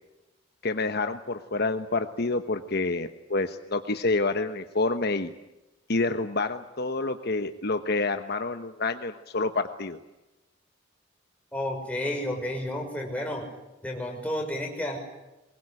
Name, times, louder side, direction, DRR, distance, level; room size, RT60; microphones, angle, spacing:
voice 1, 0.6-5.3 5.9-10.0, left 3 dB, 55° left, 8 dB, 1.2 m, -28 dB
voice 2, 11.5-13.5 13.8-15.0, left 1 dB, 5° left, 1 dB, 5.9 m, -31 dB
24.0 x 21.0 x 9.9 m, 1.0 s
head